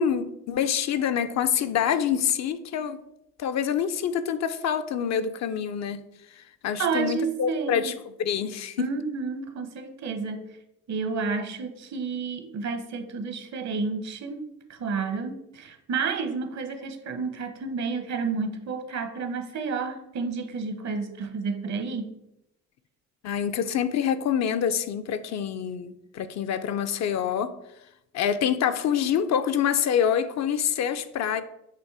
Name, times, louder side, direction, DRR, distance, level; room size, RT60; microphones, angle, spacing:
voice 1, 0.0-3.0 3.4-6.0 6.4-8.9 23.2-27.5 28.1-31.4, left 8 dB, 60° left, 0.5 m, -26 dB
voice 2, 6.8-7.9 8.8-10.4 10.9-14.4 14.7-22.1, right 5 dB, 65° right, 1.0 m, -30 dB
6.8 x 2.9 x 4.8 m
cardioid pair, 90°, 30 cm